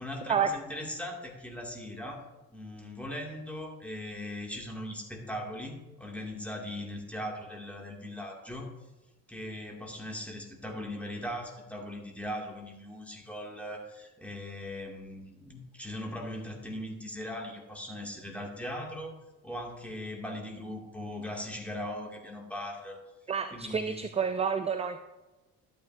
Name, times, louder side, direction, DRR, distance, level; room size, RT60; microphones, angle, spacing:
voice 1, 0.0-2.3 2.5-8.7 9.3-19.2 19.4-23.0 23.5-24.0, left 1 dB, 5° left, 0 dB, 2.1 m, -39 dB
voice 2, 23.3-25.0, right 7 dB, 15° right, 10 dB, 0.4 m, -29 dB
12.0 x 8.6 x 2.6 m, 1.1 s
figure-of-eight pair, 45°, 44 cm